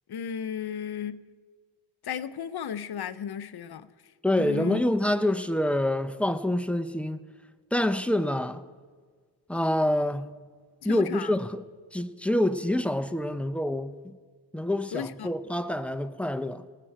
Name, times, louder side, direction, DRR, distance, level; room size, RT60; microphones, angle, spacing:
voice 1, 0.1-1.2 2.0-3.9 4.4-4.8 10.8-11.4 14.9-15.3, left 8 dB, 60° left, 0.6 m, -34 dB
voice 2, 4.2-7.2 7.7-8.6 9.5-10.3 10.8-11.6 11.9-13.9 14.5-16.6, left 1 dB, 5° left, 0.6 m, -26 dB
19.0 x 7.7 x 4.6 m
cardioid pair, 55°, 43 cm